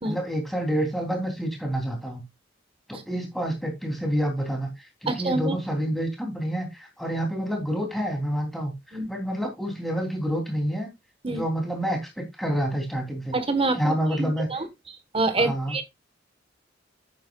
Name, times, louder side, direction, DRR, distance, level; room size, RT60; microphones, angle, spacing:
voice 1, 0.0-2.2 2.9-8.7 9.1-10.9 11.3-13.4 13.7-14.5 15.4-15.8, equal, ahead, 3.1 m, -28 dB
voice 2, 5.1-5.6 8.9-9.1 11.2-11.4 13.3-14.7 15.1-15.8, right 3 dB, 30° right, 1.3 m, -26 dB
9.3 x 9.2 x 2.4 m
head